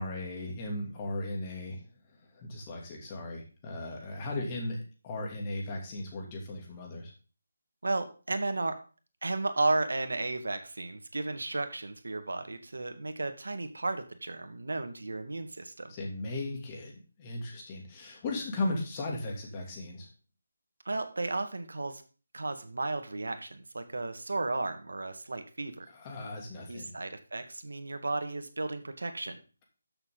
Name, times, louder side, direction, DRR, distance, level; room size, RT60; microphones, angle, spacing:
voice 1, 0.0-1.8 2.3-7.1 15.9-20.1 25.9-26.9, left 2 dB, 20° left, 0 dB, 2.7 m, -37 dB
voice 2, 7.8-8.8 9.2-15.9 20.9-22.0 22.3-25.9 26.7-29.4, right 2 dB, 85° right, 8 dB, 1.8 m, -34 dB
13.5 x 6.7 x 3.9 m, 0.36 s
figure-of-eight pair, 170°, 0 cm